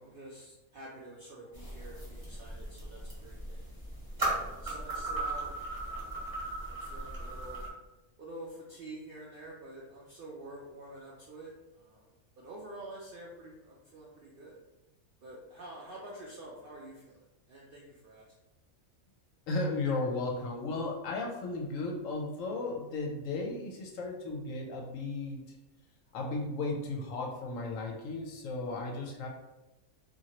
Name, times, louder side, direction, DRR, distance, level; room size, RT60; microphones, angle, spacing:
voice 1, 0.0-3.7 4.3-6.3 6.6-7.7 8.2-12.1 12.4-14.5 15.2-18.3, right 1 dB, 70° right, -4 dB, 0.5 m, -48 dB
sound 1, 1.5-7.7, right 2 dB, 20° right, 0.8 m, -37 dB
voice 2, 19.5-25.4 26.1-29.3, left 3 dB, 70° left, 0 dB, 0.9 m, -35 dB
2.9 x 2.5 x 2.8 m, 1.0 s
omnidirectional pair, 1.5 m